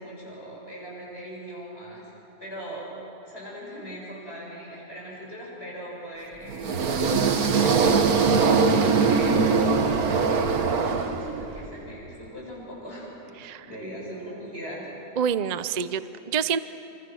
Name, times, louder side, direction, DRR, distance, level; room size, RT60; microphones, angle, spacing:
voice 1, 0.0-2.0 2.4-2.9 3.2-6.7 7.3-9.4 9.8-14.9, equal, 45° left, -5 dB, 8.0 m, -40 dB
sound 1, 6.5-11.6, right 5 dB, 85° right, 1.8 m, -22 dB
voice 2, 15.2-16.6, right 7 dB, 50° right, 14 dB, 0.4 m, -27 dB
28.0 x 26.5 x 6.4 m, 2.9 s
omnidirectional pair, 1.5 m